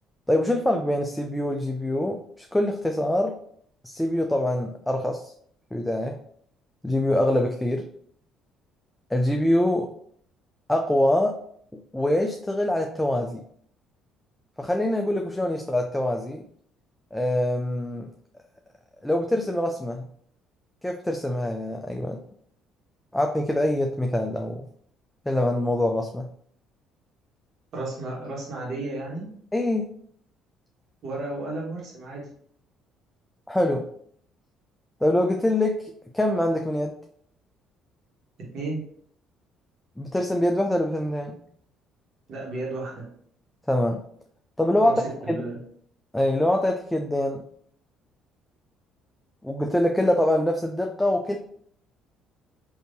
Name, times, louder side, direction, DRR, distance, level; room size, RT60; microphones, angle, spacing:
voice 1, 0.3-3.4 3.8-5.3 5.7-6.2 6.8-7.9 9.1-9.9 10.7-11.4 11.9-13.4 14.6-16.4 17.1-18.1 19.0-20.1 20.8-22.2 23.1-24.7 25.3-26.3 29.5-29.9 33.5-33.9 35.0-37.0 40.0-41.4 43.7-44.0 44.6-45.0 45.3-45.4 46.1-47.4 49.4-51.4, left 1 dB, 10° left, 2 dB, 0.4 m, -24 dB
voice 2, 27.7-29.3 31.0-32.2 38.5-38.8 42.3-43.0 44.8-45.6, right 2 dB, 55° right, -3 dB, 1.4 m, -33 dB
3.5 x 2.7 x 2.7 m, 0.63 s
hypercardioid pair, 65°, 0 cm